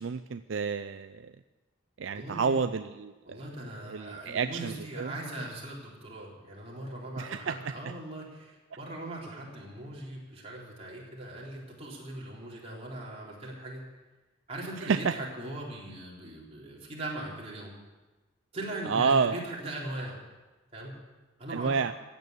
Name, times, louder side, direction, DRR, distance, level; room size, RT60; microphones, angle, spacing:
voice 1, 0.0-1.3 2.0-3.4 3.9-5.1 7.2-7.7 14.8-15.1 18.9-19.4 21.5-21.9, right 5 dB, 70° right, 11 dB, 0.5 m, -29 dB
voice 2, 2.1-2.6 3.2-13.8 14.5-17.7 18.5-20.2 20.7-20.9 21.4-21.8, right 1 dB, 30° right, -4 dB, 3.9 m, -40 dB
15.5 x 8.9 x 8.3 m, 1.2 s
head